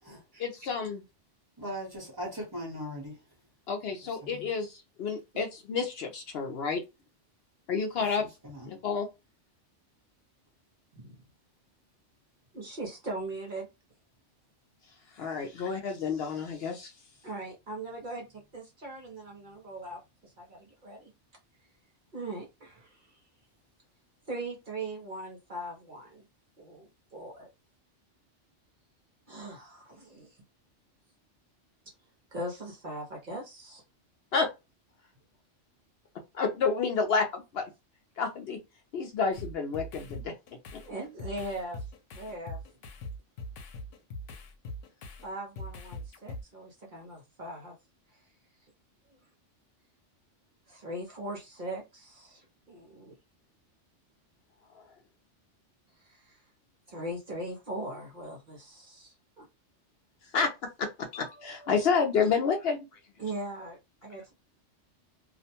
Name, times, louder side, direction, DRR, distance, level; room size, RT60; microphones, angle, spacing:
voice 1, 0.4-1.0 3.7-6.8 7.7-8.3 8.7-9.1 15.1-16.9 34.3-34.5 36.3-37.7 38.2-38.6 38.9-40.3 40.7-40.8 54.7-54.9 60.3-62.9, left 5 dB, 65° left, 0.7 m, -30 dB
voice 2, 1.6-3.2 4.2-4.5 8.4-8.7, equal, 20° right, 0.9 m, -39 dB
voice 3, 12.5-13.7 17.2-21.1 22.1-23.1 24.3-26.2 26.6-27.5 29.3-30.4 32.3-33.8 40.8-42.6 45.2-47.8 48.1-48.2 50.7-53.1 56.0-56.4 56.9-59.4 63.2-64.3, right 1 dB, 45° right, 0.8 m, -40 dB
sound 1, 39.3-45.3 45.6-46.4, left 1 dB, 85° left, 1.0 m, -41 dB
2.4 x 2.1 x 2.8 m
omnidirectional pair, 1.3 m